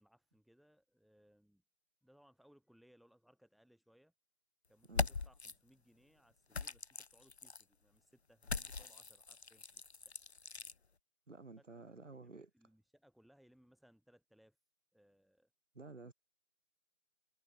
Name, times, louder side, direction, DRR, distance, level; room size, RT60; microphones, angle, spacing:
voice 1, 0.0-1.6 2.0-4.1 4.7-10.8 11.6-14.6 14.9-15.5, equal, ahead, 5.2 m, -69 dB
sound 1, 4.8-5.5 6.5-7.6 8.4-10.7, left 4 dB, 50° left, 0.8 m, -41 dB
voice 2, 11.3-12.5 15.7-16.1, right 3 dB, 60° right, 3.3 m, -52 dB
figure-of-eight pair, 165°, 41 cm